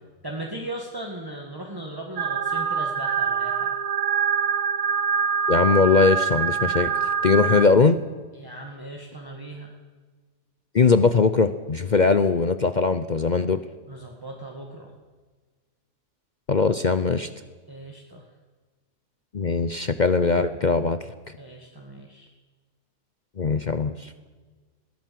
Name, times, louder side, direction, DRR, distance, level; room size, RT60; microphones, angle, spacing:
voice 1, 0.2-3.8 8.3-9.7 13.9-14.9 17.7-18.2 21.4-22.3, right 1 dB, 15° right, -1 dB, 1.9 m, -37 dB
sound 1, 2.2-7.6, right 6 dB, 60° right, 1.4 m, -24 dB
voice 2, 5.5-6.9 7.2-8.0 10.7-13.6 16.5-17.3 19.3-21.0 23.4-24.1, left 4 dB, 50° left, 11 dB, 0.5 m, -20 dB
21.0 x 16.5 x 7.7 m, 1.4 s
omnidirectional pair, 1.7 m